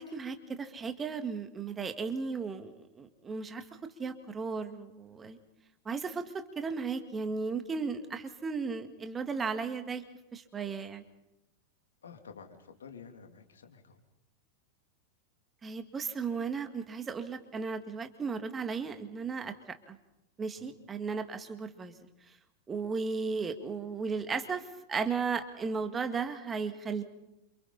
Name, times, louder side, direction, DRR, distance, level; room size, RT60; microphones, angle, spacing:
voice 1, 0.0-3.6 4.0-5.4 5.9-10.0 10.3-11.0 15.6-19.5 19.9-20.0 20.4-21.9 22.7-27.0, right 5 dB, 20° right, 7 dB, 2.2 m, -35 dB
voice 2, 12.0-14.0 20.6-20.7, left 6 dB, 70° left, 4 dB, 3.3 m, -50 dB
29.0 x 28.0 x 4.3 m, 0.90 s
figure-of-eight pair, 90°, 0 cm